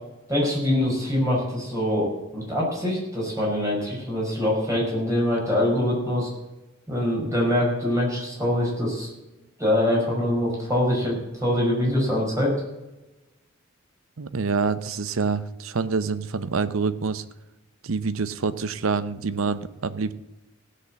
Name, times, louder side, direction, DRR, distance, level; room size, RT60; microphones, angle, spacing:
voice 1, 0.3-6.3 6.9-9.1 9.6-12.5, left 1 dB, 15° right, -3 dB, 5.3 m, -24 dB
voice 2, 14.2-17.2 17.8-20.1, right 4 dB, 80° right, 14 dB, 0.7 m, -26 dB
16.5 x 6.6 x 7.5 m, 1.0 s
head